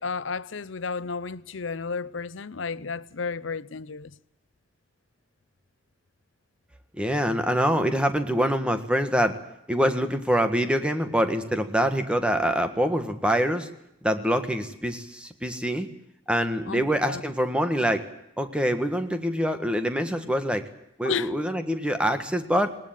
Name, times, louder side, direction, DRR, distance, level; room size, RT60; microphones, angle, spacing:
voice 1, 0.0-4.2 16.7-17.2 21.0-21.3, left 5 dB, 65° left, 0.7 m, -32 dB
voice 2, 7.0-9.4 9.7-13.7 14.0-15.9 16.3-18.1 18.4-20.7 21.0-22.7, equal, 5° right, 1.6 m, -25 dB
19.5 x 19.5 x 9.0 m
head